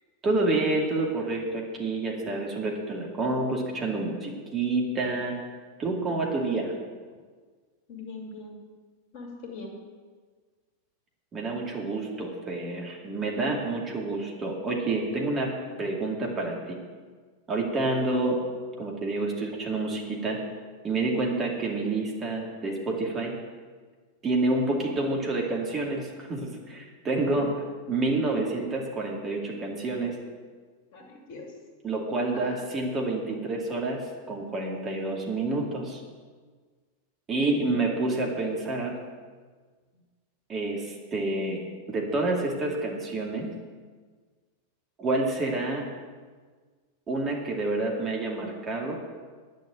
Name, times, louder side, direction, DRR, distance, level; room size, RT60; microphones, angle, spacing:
voice 1, 0.2-5.4 5.8-6.7 11.3-16.8 17.5-18.4 18.8-20.4 20.8-23.4 24.2-27.5 27.9-30.2 31.8-36.0 37.3-39.0 40.5-41.6 41.9-43.5 45.0-45.9 47.1-49.0, right 2 dB, 25° right, -1 dB, 2.5 m, -28 dB
voice 2, 7.9-8.6 9.1-9.8 27.4-27.5 30.9-31.5 32.3-32.5 37.3-37.9, left 3 dB, 50° left, 1 dB, 2.5 m, -41 dB
10.0 x 6.8 x 9.0 m, 1.5 s
figure-of-eight pair, 90°, 0 cm